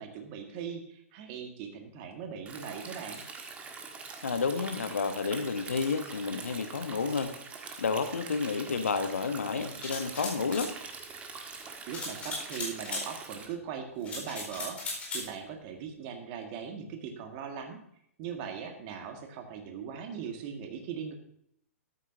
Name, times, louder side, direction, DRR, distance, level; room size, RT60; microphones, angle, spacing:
voice 1, 0.0-3.2 11.9-14.8 15.1-17.8 18.2-21.1, right 7 dB, 35° right, 4 dB, 1.9 m, -40 dB
Stream, 2.5-13.5, right 4 dB, 15° right, 1.5 m, -44 dB
voice 2, 4.2-7.3 7.8-10.7, left 5 dB, 65° left, 9 dB, 1.1 m, -30 dB
sound 1, 9.8-10.7 11.9-13.0 14.0-15.3, left 2 dB, 15° left, 4.6 m, -37 dB
13.5 x 12.5 x 2.8 m, 0.71 s
figure-of-eight pair, 110°, 8 cm